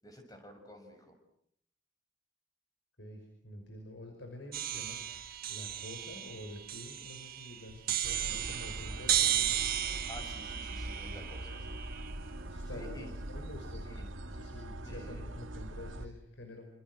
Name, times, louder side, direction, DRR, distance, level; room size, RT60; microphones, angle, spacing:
voice 1, 0.0-1.1 10.1-11.8 12.7-13.1 13.8-14.2 14.8-15.3, equal, 20° left, 5 dB, 6.5 m, -50 dB
voice 2, 3.0-9.5 12.5-16.7, left 1 dB, 65° left, 4 dB, 5.8 m, -48 dB
sound 1, 4.5-12.5, right 11 dB, 50° right, 1.6 m, -35 dB
sound 2, 8.0-16.1, right 1 dB, 90° right, 1.9 m, -42 dB
29.5 x 27.5 x 6.4 m, 0.69 s
head